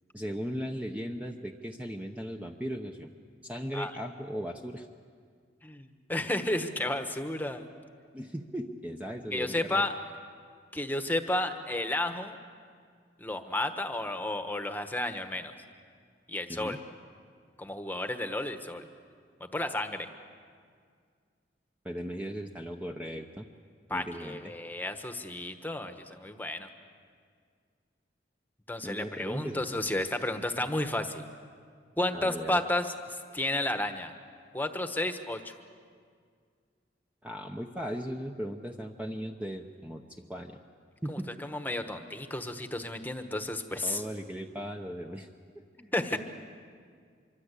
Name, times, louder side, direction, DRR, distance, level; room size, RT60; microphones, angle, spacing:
voice 1, 0.1-3.1 3.4-4.9 8.1-9.9 16.5-16.8 21.8-23.5 23.9-24.5 28.8-29.8 32.1-32.6 37.2-40.6 41.0-41.3 43.8-45.3 45.5-46.2, equal, 10° right, 2 dB, 0.8 m, -37 dB
voice 2, 5.6-7.7 9.3-9.9 10.7-12.4 13.2-15.5 16.3-16.8 17.6-18.9 19.4-20.1 23.9-26.7 28.7-31.2 32.0-34.1 34.5-35.5 41.1-44.0 45.9-46.2, left 1 dB, 10° left, 7 dB, 1.2 m, -32 dB
25.5 x 24.0 x 8.3 m, 2.1 s
head